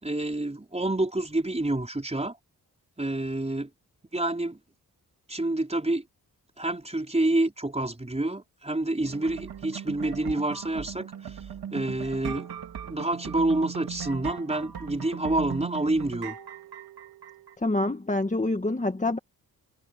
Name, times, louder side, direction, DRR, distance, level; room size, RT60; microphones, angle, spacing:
voice 1, 0.0-2.4 3.0-3.7 4.1-4.6 5.3-6.0 6.6-11.4 11.7-12.5 12.8-16.3, right 2 dB, 15° right, 5.0 m, -28 dB
sound 1, 9.0-17.5, right 8 dB, 75° right, 3.4 m, -38 dB
voice 2, 17.6-19.2, left 2 dB, 20° left, 1.9 m, -26 dB
cardioid pair, 65°, 38 cm